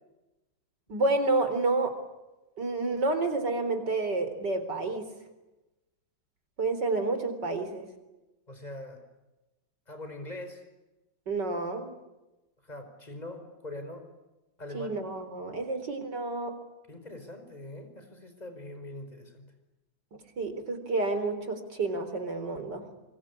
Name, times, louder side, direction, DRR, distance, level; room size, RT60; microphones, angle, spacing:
voice 1, 0.9-1.9 2.6-5.1 6.6-7.9 11.3-12.0 14.7-16.5 20.4-22.8, right 3 dB, 65° right, 9 dB, 4.5 m, -29 dB
voice 2, 8.5-9.0 9.9-10.6 12.6-14.1 14.6-15.0 16.9-19.5, left 1 dB, 20° left, 7 dB, 5.2 m, -42 dB
27.0 x 24.5 x 8.4 m, 1.0 s
omnidirectional pair, 2.0 m